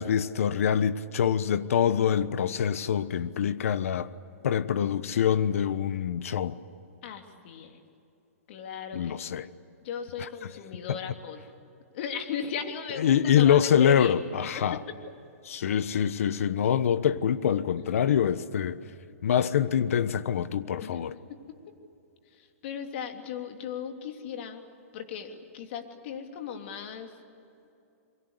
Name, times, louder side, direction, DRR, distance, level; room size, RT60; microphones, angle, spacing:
voice 1, 0.0-4.1 4.4-6.6 8.9-9.5 10.9-11.0 13.0-14.8 15.5-18.8 19.2-21.1, left 8 dB, 70° left, 1.2 m, -25 dB
voice 2, 7.0-7.8 8.5-9.1 9.8-11.4 11.9-15.0 20.8-21.0 21.3-21.4 22.4-24.6 24.9-27.1, left 7 dB, 50° left, 3.1 m, -37 dB
29.0 x 23.5 x 8.2 m
hypercardioid pair, 140°, 8 cm